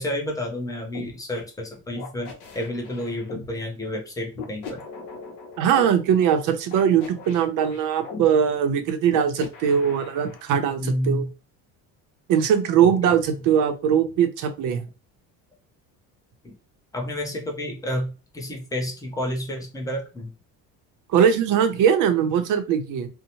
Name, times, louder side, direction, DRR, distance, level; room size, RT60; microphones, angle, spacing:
voice 1, 0.0-4.8 10.8-11.3 12.8-13.2 16.4-16.5 16.9-20.3, left 1 dB, 10° left, 1 dB, 0.6 m, -30 dB
sound 1, 0.9-1.1 2.0-3.5 4.3-5.9 6.7-8.2 9.1-10.4, left 5 dB, 60° left, 0.8 m, -38 dB
voice 2, 5.6-11.3 12.3-14.8 21.1-23.1, right 8 dB, 65° right, 7 dB, 0.6 m, -21 dB
2.7 x 2.1 x 2.8 m, 0.32 s
cardioid pair, 150°, 34 cm